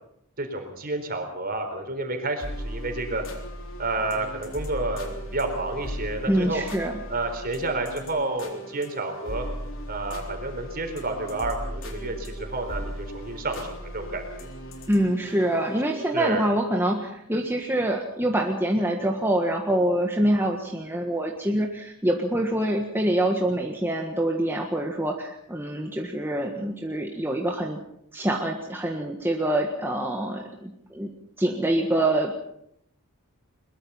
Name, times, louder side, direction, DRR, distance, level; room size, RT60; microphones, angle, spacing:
voice 1, 0.4-3.2 3.8-6.6 7.1-9.4 9.9-14.5 16.1-16.5, right 2 dB, 40° right, 5 dB, 4.1 m, -30 dB
sound 1, 2.4-16.2, equal, 60° left, 3.8 m, -37 dB
voice 2, 6.3-7.0 14.9-27.8 28.1-31.1 31.4-32.4, right 1 dB, 10° right, 1 dB, 1.6 m, -25 dB
22.0 x 21.5 x 5.7 m, 0.74 s
head